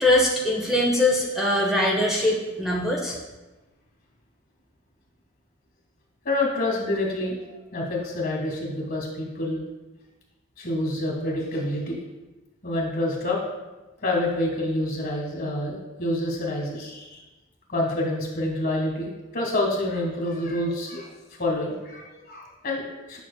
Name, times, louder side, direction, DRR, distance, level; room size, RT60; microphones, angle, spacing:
voice 1, 0.0-3.2, left 1 dB, ahead, -3 dB, 0.7 m, -22 dB
voice 2, 6.2-9.6 10.6-12.0 12.6-13.4 14.0-17.2 17.7-21.1 21.4-23.2, left 1 dB, 50° left, -1 dB, 1.6 m, -27 dB
8.7 x 6.0 x 2.2 m, 1.1 s
head